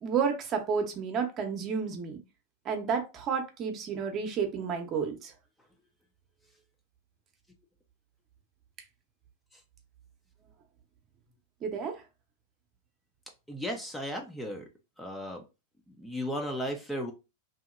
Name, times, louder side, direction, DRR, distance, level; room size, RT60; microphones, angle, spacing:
voice 1, 0.0-2.2 2.6-5.3 11.6-12.0, right 6 dB, 35° right, 0.8 m, -31 dB
voice 2, 13.5-14.7 15.0-15.4 15.9-17.1, equal, 5° left, 0.6 m, -35 dB
2.8 x 2.8 x 2.5 m
hypercardioid pair, 95°, 0 cm